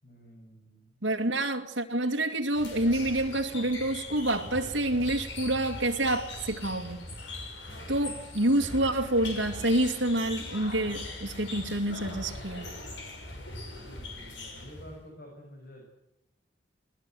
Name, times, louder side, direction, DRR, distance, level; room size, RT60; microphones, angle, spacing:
voice 1, 0.0-1.0 13.8-15.9, equal, 55° left, 0 dB, 6.9 m, -49 dB
voice 2, 1.0-7.0 7.9-12.7, right 1 dB, 75° right, 2 dB, 2.4 m, -28 dB
sound 1, 2.5-15.0, left 2 dB, 75° left, 6.5 m, -41 dB
21.5 x 19.0 x 7.9 m, 0.88 s
head